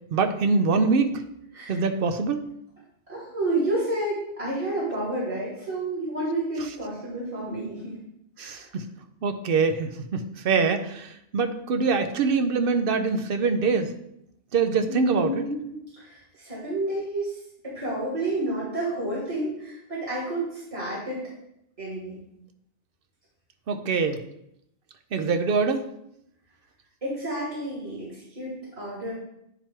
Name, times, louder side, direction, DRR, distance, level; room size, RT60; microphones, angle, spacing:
voice 1, 0.1-1.2 1.7-2.5 8.4-8.8 9.2-13.9 14.5-15.4 23.7-24.2 25.1-25.8, right 4 dB, 60° right, 7 dB, 0.7 m, -24 dB
voice 2, 3.1-8.0 8.4-8.7 14.9-17.4 17.6-21.2 21.8-22.2 27.0-29.1, right 1 dB, 30° right, -8 dB, 2.3 m, -30 dB
8.9 x 3.0 x 4.4 m, 0.78 s
omnidirectional pair, 1.2 m